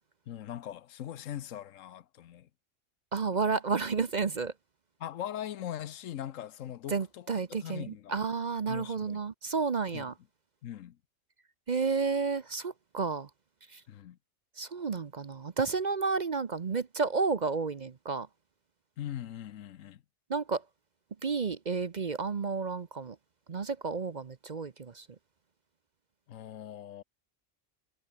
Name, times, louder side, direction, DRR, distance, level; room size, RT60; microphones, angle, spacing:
voice 1, 0.3-2.5 5.0-7.3 7.6-8.2 8.7-9.2 9.9-10.1 10.6-11.0 13.9-14.2 19.0-20.0 26.3-27.0, left 11 dB, 80° left, 1.1 m, -41 dB
voice 2, 3.1-4.5 6.9-10.1 11.7-13.3 13.7-13.8 14.6-18.3 20.3-20.6 21.2-23.2 23.5-25.1, right 4 dB, 40° right, 0.8 m, -31 dB
omnidirectional pair, 1.3 m